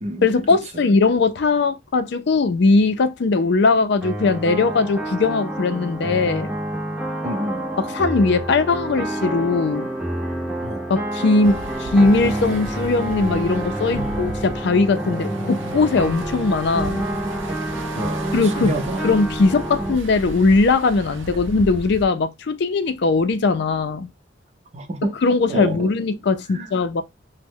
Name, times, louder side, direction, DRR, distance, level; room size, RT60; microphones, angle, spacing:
voice 1, 0.2-6.5 7.8-9.9 10.9-17.1 18.3-18.7 19.0-24.1 25.2-27.0, left 3 dB, 65° left, 0.4 m, -19 dB
sound 1, 4.0-20.0, right 1 dB, 5° right, 0.7 m, -28 dB
voice 2, 7.2-7.7 10.6-10.9 13.9-14.2 15.0-15.8 17.9-19.1 24.7-25.1 25.5-25.9 26.5-26.7, right 1 dB, 35° right, 0.7 m, -29 dB
sound 2, 11.4-22.1, right 2 dB, 90° right, 0.6 m, -36 dB
3.0 x 2.1 x 3.6 m
head